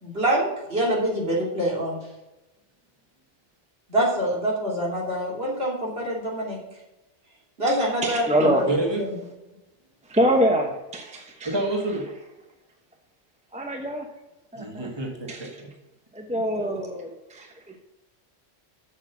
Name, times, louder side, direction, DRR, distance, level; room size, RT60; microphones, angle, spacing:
voice 1, 0.0-2.0 3.9-6.6 7.6-8.5, right 1 dB, 55° right, -3 dB, 3.1 m, -25 dB
voice 2, 8.0-8.6 10.0-11.6 13.5-14.1 14.5-14.9 15.3-15.6 16.1-17.8, right 1 dB, 5° right, 3 dB, 1.0 m, -25 dB
voice 3, 8.7-9.0 11.5-12.1 14.6-15.5 16.6-16.7, right 2 dB, 20° right, 0 dB, 1.9 m, -28 dB
7.3 x 6.7 x 6.9 m, 0.98 s
omnidirectional pair, 1.2 m